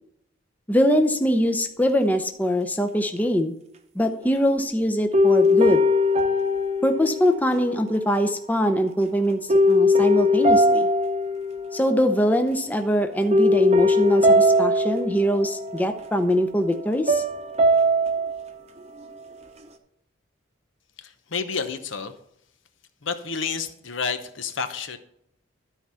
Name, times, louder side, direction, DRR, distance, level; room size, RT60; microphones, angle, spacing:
voice 1, 0.7-3.5 4.0-5.8 6.8-9.4 9.7-10.9 11.7-17.2, equal, 10° left, 6 dB, 0.6 m, -22 dB
sound 1, 4.0-4.7 5.1-7.8 9.5-12.0 12.3-12.7 13.3-16.1 17.1-18.5, left 1 dB, 30° right, 0.8 m, -20 dB
voice 2, 21.0-22.1 23.0-25.0, left 5 dB, 70° left, 9 dB, 0.9 m, -30 dB
12.5 x 4.6 x 5.6 m, 0.75 s
head